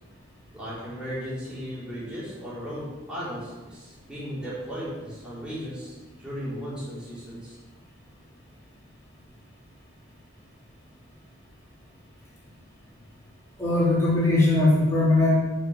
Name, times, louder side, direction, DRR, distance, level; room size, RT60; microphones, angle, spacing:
voice 1, 0.5-7.6, equal, 5° right, -10 dB, 4.4 m, -36 dB
voice 2, 13.6-15.3, left 2 dB, 15° left, -8 dB, 3.8 m, -20 dB
9.3 x 6.5 x 8.3 m, 1.3 s
head